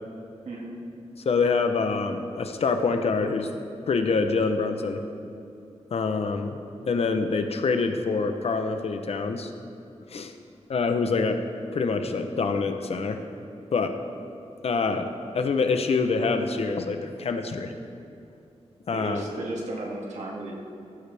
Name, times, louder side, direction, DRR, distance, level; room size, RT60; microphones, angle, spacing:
voice 1, 0.4-0.8 18.9-20.5, right 2 dB, 80° right, -3 dB, 2.1 m, -34 dB
voice 2, 1.2-3.5 3.9-5.0 5.9-9.5 10.1-10.3 10.7-11.4 11.7-13.2 13.7-13.9 14.6-15.1 15.3-17.7 18.9-19.2, left 4 dB, 60° left, 7 dB, 0.8 m, -25 dB
15.0 x 12.0 x 3.5 m, 2.6 s
wide cardioid pair, 170°, 12 cm